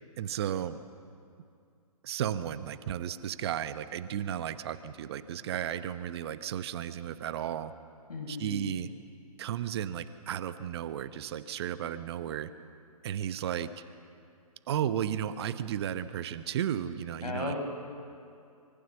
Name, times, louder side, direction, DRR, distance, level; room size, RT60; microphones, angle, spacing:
voice 1, 0.2-0.8 2.0-7.7 8.3-8.9 9.4-12.5 13.0-13.8 14.7-17.5, right 10 dB, 45° right, 12 dB, 1.0 m, -34 dB
voice 2, 8.1-8.7 17.2-17.6, left 3 dB, 80° left, 3 dB, 6.3 m, -35 dB
25.0 x 23.5 x 7.2 m, 2.4 s
figure-of-eight pair, 130°, 20 cm